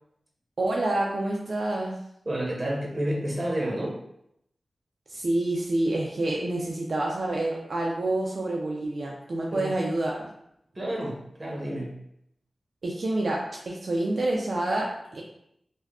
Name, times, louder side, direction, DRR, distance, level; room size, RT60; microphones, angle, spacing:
voice 1, 0.6-2.0 5.1-10.3 12.8-15.2, right 2 dB, 70° right, -2 dB, 0.4 m, -28 dB
voice 2, 2.2-4.0 9.5-9.7 10.7-12.0, right 1 dB, 35° right, -2 dB, 0.9 m, -30 dB
3.4 x 2.2 x 2.4 m, 0.75 s
cardioid pair, 45°, 0 cm